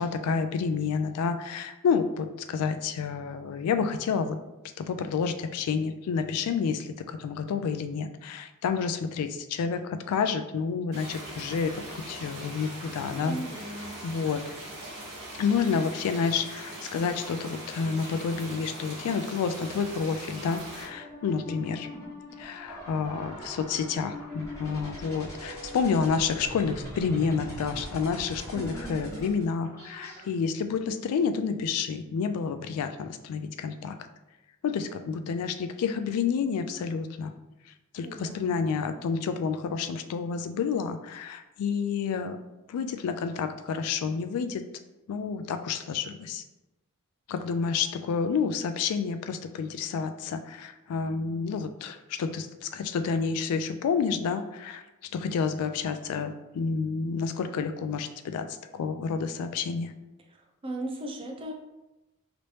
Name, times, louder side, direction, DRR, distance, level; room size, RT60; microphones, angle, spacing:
voice 1, 0.0-4.4 4.8-13.7 14.0-14.4 15.3-21.9 22.4-34.0 34.6-37.3 37.9-42.4 42.7-44.6 45.1-46.4 47.3-54.8 55.1-59.9, left 5 dB, 85° left, 13 dB, 0.3 m, -29 dB
sound 1, 10.9-20.9, right 1 dB, 50° right, 1.4 m, -41 dB
voice 2, 13.2-13.9 28.5-29.3 38.0-38.6 60.6-61.5, right 1 dB, 25° right, 1 dB, 0.4 m, -37 dB
sound 2, 20.9-30.2, equal, 15° left, 1.1 m, -41 dB
3.0 x 2.9 x 3.0 m, 1.0 s
head